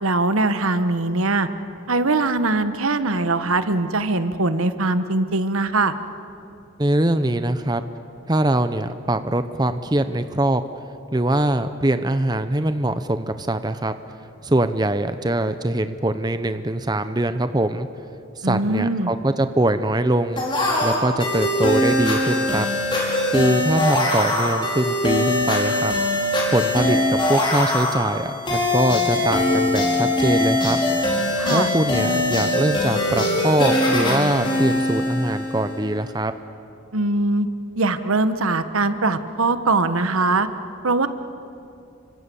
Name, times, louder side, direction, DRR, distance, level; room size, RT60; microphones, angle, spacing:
voice 1, 0.0-1.5 1.9-5.9 18.4-19.1 31.4-31.7 36.9-37.5 37.8-40.5 40.8-41.1, right 2 dB, 85° right, 10 dB, 1.2 m, -21 dB
voice 2, 6.8-7.8 8.3-10.6 11.1-13.9 14.4-17.9 18.4-20.4 20.8-22.7 23.3-25.9 26.5-30.8 31.5-36.3, right 1 dB, 20° right, 10 dB, 0.7 m, -22 dB
sound 1, 20.4-35.8, left 1 dB, 25° left, 5.1 m, -22 dB
29.5 x 25.5 x 7.1 m, 2.7 s
head